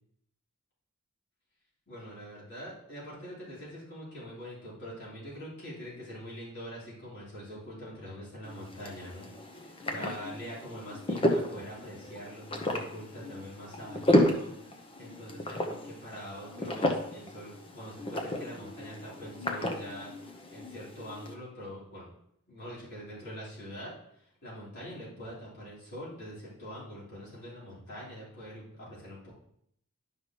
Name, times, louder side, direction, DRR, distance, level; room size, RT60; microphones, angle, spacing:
voice 1, 1.9-22.1 22.5-29.4, equal, 50° left, -7 dB, 3.5 m, -44 dB
sound 1, 8.4-21.3, left 1 dB, 25° left, 0.9 m, -33 dB
11.5 x 5.6 x 3.1 m, 0.71 s
head